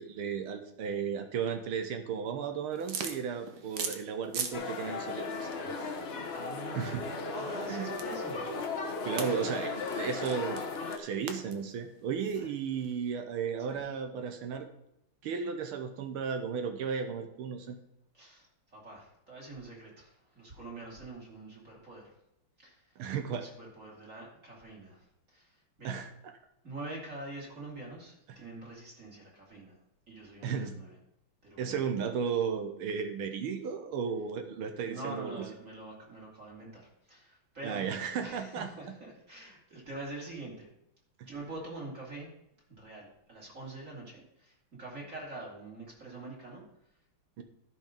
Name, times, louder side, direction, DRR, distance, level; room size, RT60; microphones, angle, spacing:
voice 1, 0.0-5.5 6.7-7.1 7.7-7.9 9.0-9.7 10.0-10.6 11.0-14.7 15.2-17.8 23.0-23.5 25.8-26.3 28.3-28.4 30.4-30.8 31.6-35.5 37.6-38.7 41.2-41.3 47.4-47.5, right 6 dB, 80° right, 7 dB, 1.7 m, -34 dB
sound 1, 2.7-4.6 4.9-13.1, right 6 dB, 60° right, 1.3 m, -42 dB
sound 2, 4.5-11.0, left 3 dB, 45° left, 0.8 m, -36 dB
voice 2, 6.3-8.5 9.3-9.5 10.2-10.4 12.3-12.5 13.7-13.8 18.1-22.2 22.6-23.0 23.4-26.0 26.6-29.7 30.1-31.0 31.4-31.8 34.9-37.9 38.2-40.7 41.2-42.3 42.8-46.6, right 2 dB, 35° right, -3 dB, 3.0 m, -45 dB
12.0 x 5.5 x 5.2 m, 0.81 s
omnidirectional pair, 2.4 m